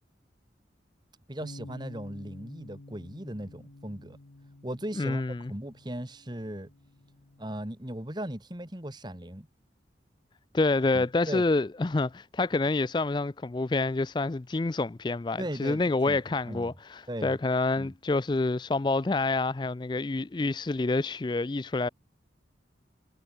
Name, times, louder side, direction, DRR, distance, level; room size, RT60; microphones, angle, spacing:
voice 1, 1.3-4.2 4.6-5.2 5.5-6.7 7.4-9.5 10.9-11.4 15.4-16.2 16.4-16.7 17.1-17.3 17.8-17.9, right 1 dB, 25° right, 2.2 m, -37 dB
Bass guitar, 1.4-7.7, left 2 dB, 80° left, 1.1 m, -50 dB
voice 2, 5.0-5.5 10.5-21.9, left 3 dB, 25° left, 0.4 m, -27 dB
head